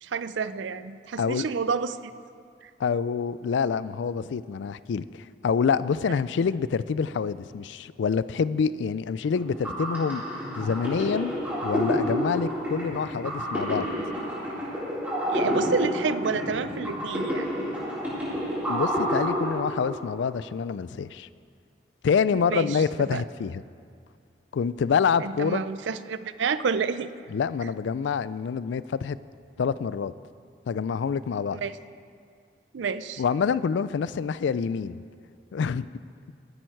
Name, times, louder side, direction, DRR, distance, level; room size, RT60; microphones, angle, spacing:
voice 1, 0.0-2.1 2.6-2.7 15.3-17.5 22.3-23.2 25.2-27.1 31.5-31.8 32.7-33.2, right 5 dB, 85° right, 14 dB, 0.4 m, -29 dB
voice 2, 2.8-5.0 5.4-10.2 10.6-11.3 11.6-13.9 18.7-21.3 22.0-23.6 24.5-25.6 27.3-29.2 29.6-30.1 30.7-31.6 33.2-35.0 35.5-35.9, left 6 dB, 80° left, 17 dB, 0.3 m, -26 dB
sound 1, 9.4-20.2, equal, 10° right, 3.6 m, -29 dB
13.5 x 10.5 x 4.6 m, 2.2 s
head